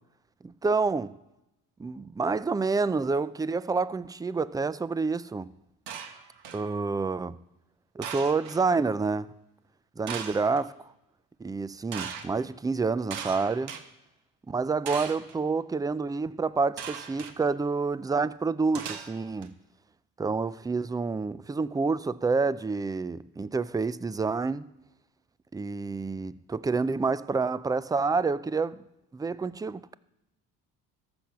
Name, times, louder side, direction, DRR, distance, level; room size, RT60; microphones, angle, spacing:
voice 1, 0.4-1.1 1.8-5.5 6.5-7.4 8.0-9.3 10.0-10.7 11.4-13.7 14.5-19.5 20.2-24.7 25.5-28.8 29.1-29.9, right 4 dB, 10° right, 0.3 m, -28 dB
sound 1, 5.9-6.7 8.0-8.6 10.1-10.6 11.9-12.3 13.1-13.8 14.9-15.3 16.8-17.3 18.7-19.5, right 7 dB, 75° right, 1.2 m, -38 dB
14.0 x 6.1 x 5.8 m
supercardioid pair, 75°, 40 cm